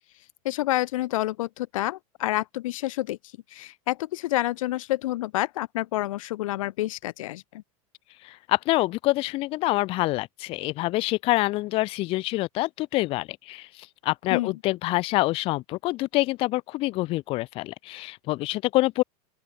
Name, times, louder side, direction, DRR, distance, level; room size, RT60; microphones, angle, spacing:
voice 1, 0.4-3.2 3.5-7.6 14.3-14.6, left 16 dB, 85° left, 0.9 m, -28 dB
voice 2, 8.2-19.0, left 19 dB, 35° left, 0.7 m, -26 dB
open air
supercardioid pair, 160°, 17 cm